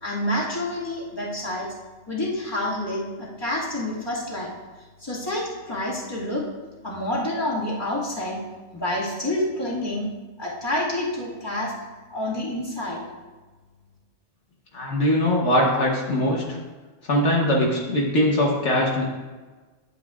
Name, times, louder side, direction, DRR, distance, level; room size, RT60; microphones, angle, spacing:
voice 1, 0.0-1.7 2.1-4.5 5.0-6.4 6.8-8.4 8.7-10.1 10.4-11.7 12.1-13.0, left 1 dB, 20° left, -6 dB, 1.9 m, -28 dB
voice 2, 14.7-16.6 17.1-19.0, left 1 dB, 65° left, -2 dB, 1.4 m, -21 dB
11.0 x 7.8 x 2.4 m, 1.3 s
omnidirectional pair, 1.3 m